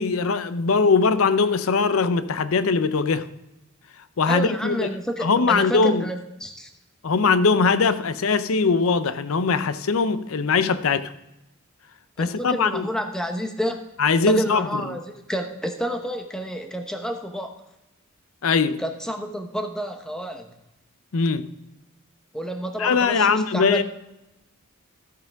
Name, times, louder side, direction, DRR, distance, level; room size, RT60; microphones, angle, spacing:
voice 1, 0.0-3.3 4.2-4.9 5.2-6.0 7.0-11.1 12.2-12.9 14.0-14.8 18.4-18.8 21.1-21.5 22.8-23.8, left 4 dB, 70° left, 0.6 m, -21 dB
voice 2, 4.3-6.7 12.2-13.8 14.3-15.0 15.3-17.5 18.8-20.5 22.3-23.8, equal, 5° left, 0.8 m, -29 dB
13.0 x 8.9 x 3.5 m
head